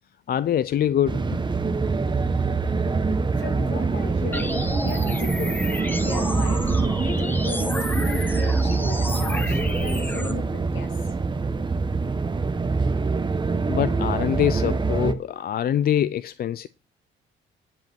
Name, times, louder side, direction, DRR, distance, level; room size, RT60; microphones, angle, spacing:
voice 1, 0.3-1.3 13.7-16.7, left 10 dB, 50° left, 0.4 m, -24 dB
sound 1, 1.1-15.1, right 4 dB, 25° right, 0.9 m, -24 dB
voice 2, 3.4-4.5 4.8-5.6 6.0-6.6 7.0-10.9, left 4 dB, 70° left, 2.5 m, -36 dB
sound 2, 4.3-10.3, left 1 dB, 10° left, 1.3 m, -30 dB
11.0 x 5.1 x 6.0 m
cardioid pair, 90°, 20 cm